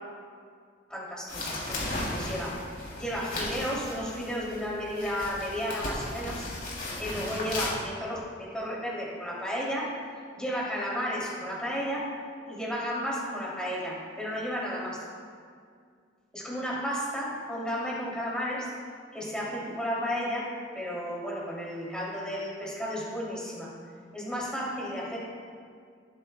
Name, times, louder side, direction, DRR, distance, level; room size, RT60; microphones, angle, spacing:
voice 1, 0.9-2.6 3.0-6.5 7.0-9.9 10.4-12.1 12.5-15.0 16.3-18.7 19.1-23.7 24.1-25.2, equal, 5° left, -6 dB, 3.0 m, -33 dB
sound 1, 1.3-7.7, left 2 dB, 50° left, 3.2 m, -36 dB
19.5 x 9.8 x 2.3 m, 2.2 s
head